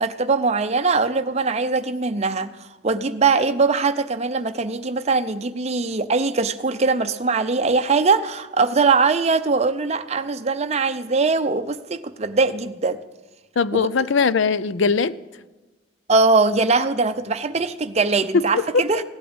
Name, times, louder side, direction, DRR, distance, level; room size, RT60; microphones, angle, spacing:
voice 1, 0.0-2.5 2.8-13.0 13.7-13.9 16.1-19.0, right 4 dB, 30° right, 0.6 m, -21 dB
voice 2, 13.6-15.1 18.3-18.8, left 5 dB, 60° left, 0.5 m, -20 dB
16.0 x 8.4 x 8.8 m
head